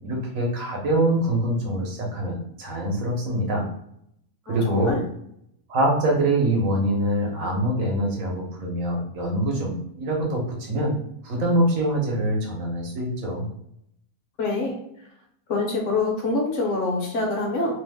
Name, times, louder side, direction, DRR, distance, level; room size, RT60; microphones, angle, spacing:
voice 1, 0.0-3.7 4.5-5.0 5.7-10.9 11.2-13.4, right 1 dB, 70° right, -1 dB, 1.3 m, -24 dB
voice 2, 4.5-5.0 14.4-14.8 15.5-17.8, left 3 dB, 60° left, 0 dB, 1.0 m, -25 dB
3.0 x 2.0 x 3.4 m, 0.73 s
omnidirectional pair, 1.5 m